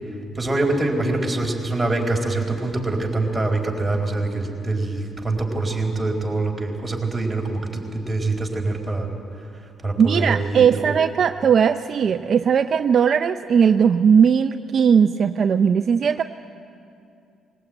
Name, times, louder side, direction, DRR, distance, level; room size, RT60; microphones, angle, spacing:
voice 1, 0.3-9.1 9.8-11.0, right 2 dB, 10° right, -1 dB, 4.3 m, -24 dB
voice 2, 10.0-16.2, right 7 dB, 55° right, 8 dB, 0.5 m, -18 dB
21.0 x 18.0 x 8.9 m, 2.5 s
cardioid pair, 90°, 0 cm